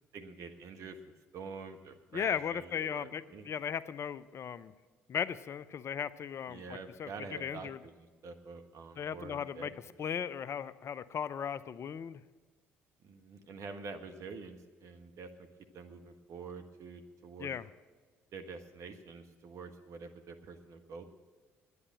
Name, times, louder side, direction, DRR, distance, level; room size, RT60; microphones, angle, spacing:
voice 1, 0.1-3.5 6.5-10.1 13.0-15.5 15.7-17.5 18.3-21.0, right 4 dB, 55° right, 6 dB, 1.3 m, -47 dB
voice 2, 2.1-4.7 5.1-7.8 9.0-9.7 10.0-12.2 17.4-17.7, left 8 dB, 45° left, 16 dB, 0.5 m, -37 dB
9.9 x 9.5 x 8.7 m, 1.4 s
hypercardioid pair, 55°, 6 cm